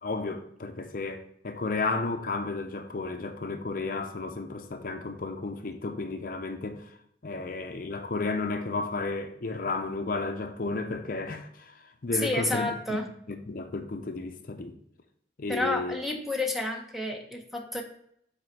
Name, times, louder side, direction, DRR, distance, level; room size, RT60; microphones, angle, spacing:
voice 1, 0.0-6.9 7.2-13.0 13.3-14.7 15.4-16.0, left 3 dB, 50° left, 0.6 m, -33 dB
voice 2, 12.2-13.0 15.5-17.8, left 2 dB, ahead, 0.8 m, -30 dB
5.4 x 4.3 x 5.8 m
head